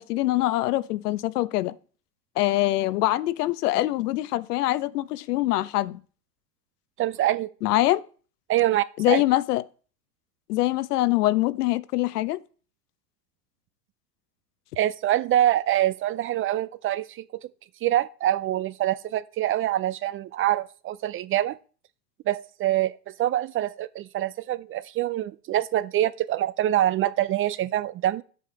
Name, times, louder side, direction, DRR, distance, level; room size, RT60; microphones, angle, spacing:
voice 1, 0.0-1.7 2.4-6.0 7.6-8.0 9.0-9.6 10.5-12.4, left 16 dB, 70° left, 1.0 m, -24 dB
voice 2, 7.0-7.5 8.5-9.2 14.8-17.5 17.8-21.6 22.3-28.2, right 13 dB, 25° right, 0.5 m, -25 dB
12.0 x 8.3 x 5.7 m
hypercardioid pair, 100°, 49 cm